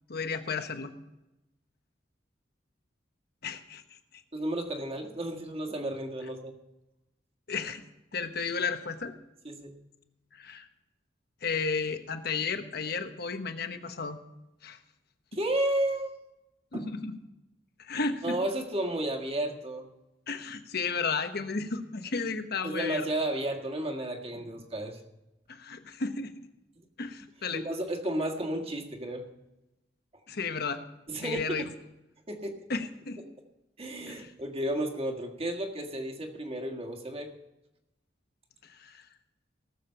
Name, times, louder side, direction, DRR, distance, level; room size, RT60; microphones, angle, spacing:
voice 1, 0.1-0.9 3.4-3.8 4.1-4.2 7.5-7.8 8.1-9.1 10.3-10.7 11.4-14.2 14.6-14.8 16.7-17.2 17.8-18.4 20.3-23.1 25.5-26.5 27.0-27.7 30.3-30.8 31.2-31.6 32.7-33.2 34.1-34.3 38.6-39.0, left 4 dB, 60° left, 8 dB, 1.1 m, -33 dB
voice 2, 4.3-6.5 9.4-9.8 15.3-16.1 16.7-16.9 18.2-19.9 22.6-25.0 27.5-29.3 31.1-31.7 32.3-32.6 33.8-37.3, right 1 dB, 35° right, 2 dB, 1.8 m, -32 dB
18.0 x 7.2 x 5.8 m, 0.94 s
head